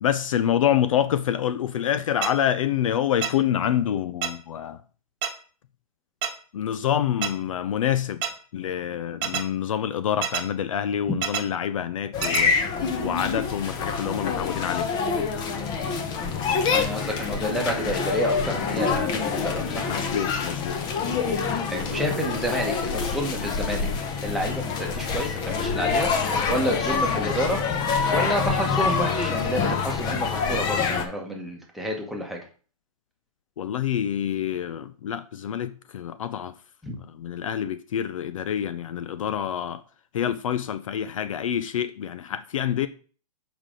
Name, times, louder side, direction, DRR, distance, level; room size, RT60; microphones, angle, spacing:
voice 1, 0.0-4.8 6.5-8.2 8.5-12.7 13.0-14.9 19.9-20.8 33.6-36.5 37.1-39.8 40.1-42.9, left 10 dB, 55° left, 0.5 m, -27 dB
sound 1, 2.2-2.3 3.2-3.3 4.2-4.3 5.2-5.3 6.2-6.3 7.2-7.3 8.2-8.3 9.2-9.4 10.2-10.4 11.2-11.4 12.2-12.4, right 9 dB, 40° right, 1.1 m, -26 dB
sound 2, 12.1-31.1, left 5 dB, 20° left, 0.9 m, -26 dB
voice 2, 16.7-19.9 21.7-23.9 24.2-26.1 26.5-27.6 28.1-32.4 36.8-36.9, equal, ahead, 1.2 m, -29 dB
7.1 x 5.0 x 3.8 m
hypercardioid pair, 140°, 20 cm